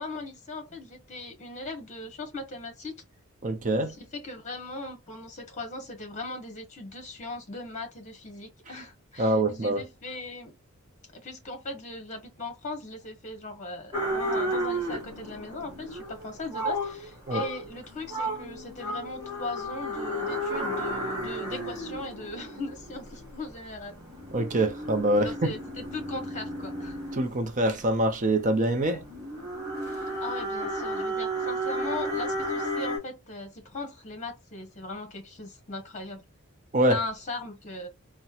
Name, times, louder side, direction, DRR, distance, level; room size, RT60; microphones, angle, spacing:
voice 1, 0.0-2.9 4.0-10.6 11.1-23.9 25.2-27.0 28.9-29.0 29.9-36.2 36.9-37.9, left 2 dB, 35° left, 1.2 m, -39 dB
voice 2, 3.4-4.0 9.2-9.8 17.3-17.5 24.3-25.5 27.1-29.0 36.7-37.0, right 1 dB, 35° right, 0.6 m, -25 dB
sound 1, 13.9-33.0, right 1 dB, 15° right, 1.6 m, -33 dB
4.2 x 2.2 x 2.4 m
head